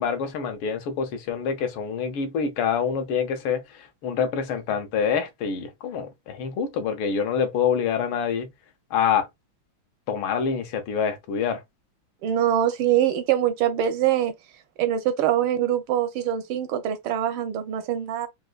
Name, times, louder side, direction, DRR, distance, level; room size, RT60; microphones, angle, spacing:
voice 1, 0.0-8.5 8.9-9.3 10.1-11.6, left 7 dB, 80° left, 1.5 m, -26 dB
voice 2, 12.2-14.3 14.8-18.3, right 10 dB, 85° right, 1.5 m, -23 dB
4.5 x 2.4 x 2.2 m
omnidirectional pair, 2.2 m